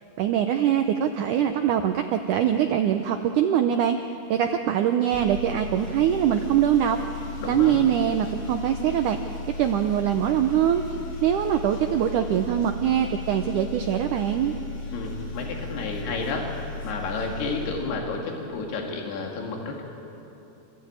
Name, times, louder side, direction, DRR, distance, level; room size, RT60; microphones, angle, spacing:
voice 1, 0.2-4.0 4.3-7.0 7.5-9.2 9.5-10.8 11.2-14.5, right 10 dB, 85° right, 6 dB, 1.8 m, -23 dB
sound 1, 5.1-18.5, left 3 dB, 40° left, 1.5 m, -36 dB
voice 2, 7.4-7.8 14.9-16.5 16.8-19.8, left 4 dB, 80° left, 1 dB, 4.3 m, -31 dB
27.0 x 15.0 x 8.8 m, 3.0 s
omnidirectional pair, 4.6 m